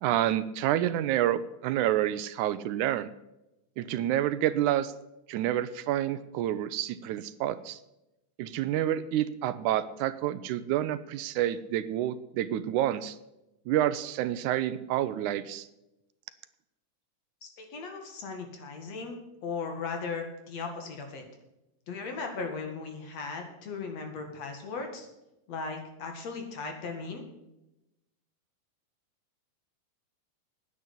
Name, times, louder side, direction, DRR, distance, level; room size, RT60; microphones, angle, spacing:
voice 1, 0.0-3.1 3.8-4.9 5.3-7.8 8.4-13.2 13.7-15.7, right 12 dB, 80° right, 14 dB, 2.0 m, -28 dB
voice 2, 17.6-19.1 19.4-21.2 21.9-25.1 25.5-27.2, left 4 dB, 55° left, 4 dB, 3.1 m, -37 dB
10.0 x 9.6 x 8.2 m, 0.92 s
omnidirectional pair, 3.6 m